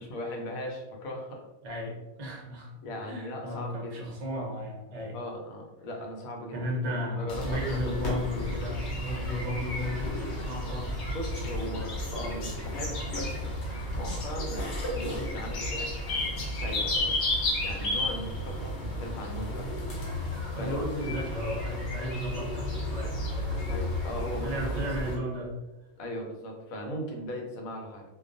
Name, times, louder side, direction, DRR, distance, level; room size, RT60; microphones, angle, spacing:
voice 1, 0.0-1.4 2.8-3.9 5.1-7.9 11.1-13.6 13.9-17.1 17.6-19.7 20.6-20.8 23.7-24.8 26.0-28.0, left 1 dB, 90° left, 1 dB, 1.0 m, -38 dB
voice 2, 1.6-2.7 3.0-5.2 6.5-11.0 20.5-23.7 24.4-25.5, equal, 50° right, -2 dB, 0.5 m, -35 dB
sound 1, 7.3-25.2, left 1 dB, 65° left, 0.9 m, -32 dB
2.3 x 2.2 x 2.5 m, 1.0 s
omnidirectional pair, 1.4 m